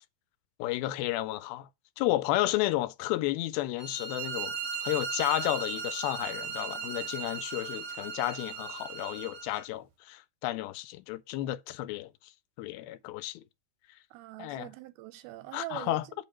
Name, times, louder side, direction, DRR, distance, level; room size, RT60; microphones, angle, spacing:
voice 1, 0.6-1.7 2.0-12.3 12.6-13.4 14.4-14.7 15.5-16.0, left 16 dB, 85° left, 2.4 m, -32 dB
sound 1, 3.8-9.6, right 6 dB, 65° right, 1.7 m, -37 dB
voice 2, 14.1-16.3, right 16 dB, 90° right, 2.6 m, -43 dB
8.1 x 3.1 x 6.0 m
omnidirectional pair, 4.2 m